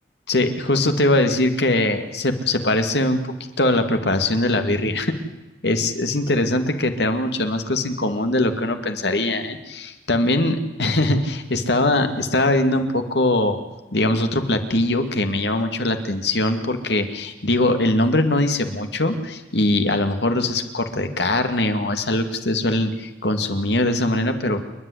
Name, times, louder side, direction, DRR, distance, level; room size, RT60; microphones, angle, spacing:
voice 1, 0.3-3.2 3.6-5.1 5.6-13.6 13.9-24.6, left 1 dB, 65° left, 7 dB, 2.3 m, -21 dB
28.0 x 11.0 x 9.9 m, 1.1 s
head